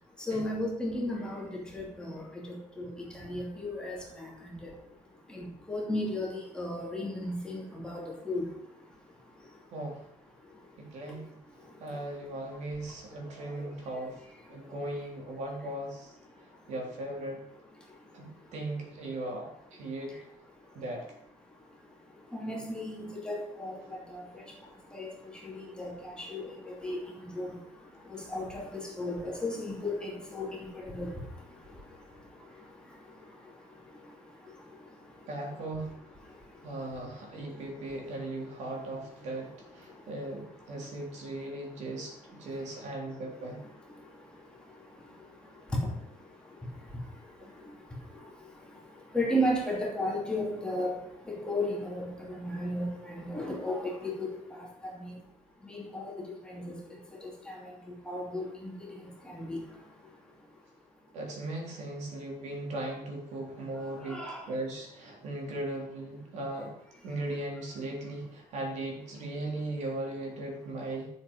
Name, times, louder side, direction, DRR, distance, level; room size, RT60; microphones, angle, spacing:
voice 1, 0.2-4.8 5.3-8.9 9.4-9.6 10.5-10.6 11.1-11.3 11.6-12.0 12.5-12.6 13.2-13.7 14.6-14.7 17.9-18.3 21.6-21.8 22.0-35.3 36.3-36.8 37.5-37.6 39.9-40.1 40.7-40.9 43.9-55.2 55.6-60.1 64.0-64.5, left 1 dB, 5° left, -3 dB, 2.7 m, -37 dB
voice 2, 9.7-10.0 10.8-11.4 11.8-14.2 14.5-16.2 16.7-17.4 18.1-20.2 20.7-21.1 35.3-36.0 36.6-43.6 61.1-66.8 67.0-71.1, right 2 dB, 55° right, 0 dB, 3.5 m, -38 dB
12.5 x 7.4 x 5.5 m, 0.76 s
cardioid pair, 155°, 14 cm